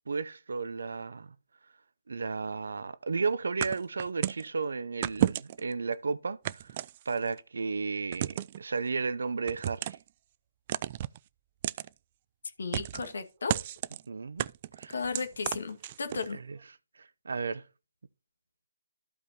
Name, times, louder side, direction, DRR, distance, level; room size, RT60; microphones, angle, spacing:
voice 1, 0.1-1.3 2.1-6.7 7.1-10.0 14.1-14.5 14.8-15.0 16.3-16.6 17.0-17.6, right 4 dB, 70° right, 0.6 m, -33 dB
sound 1, 3.6-4.5 5.0-5.7 6.4-7.4 8.1-8.6 9.5-10.1 10.7-11.2 11.6-11.9 12.7-13.1 13.5-14.0 14.4-16.3, right 12 dB, 35° right, 0.3 m, -32 dB
voice 2, 12.6-13.6 14.9-16.4, left 4 dB, 65° left, 2.0 m, -34 dB
14.0 x 5.2 x 2.9 m
figure-of-eight pair, 145°, 0 cm